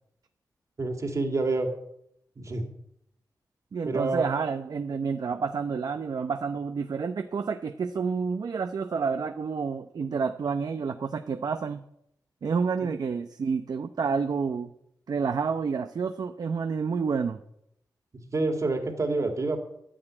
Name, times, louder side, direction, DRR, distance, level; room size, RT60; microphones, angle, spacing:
voice 1, 0.8-1.7 2.4-2.6 3.8-4.3 18.3-19.6, right 3 dB, 45° right, 5 dB, 2.6 m, -27 dB
voice 2, 3.7-11.8 12.4-14.7 15.1-17.4, right 5 dB, 65° right, 8 dB, 0.7 m, -29 dB
11.0 x 10.0 x 8.9 m, 0.75 s
wide cardioid pair, 95°, 7 cm